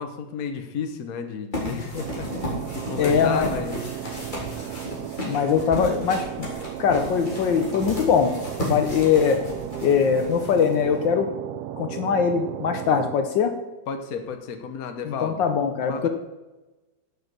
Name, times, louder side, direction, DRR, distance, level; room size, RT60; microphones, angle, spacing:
voice 1, 0.0-3.8 13.9-15.5 15.8-16.1, left 6 dB, 50° left, 6 dB, 1.5 m, -33 dB
sound 1, 1.5-11.0, left 1 dB, 25° left, 3.7 m, -34 dB
sound 2, 2.0-13.2, right 12 dB, 70° right, 1.0 m, -35 dB
voice 2, 3.0-3.5 5.2-6.5 6.8-8.3 8.6-9.4 9.8-11.3 11.8-13.5 15.0-16.1, left 7 dB, 70° left, 6 dB, 1.5 m, -22 dB
11.0 x 7.0 x 6.7 m, 1.1 s
omnidirectional pair, 2.1 m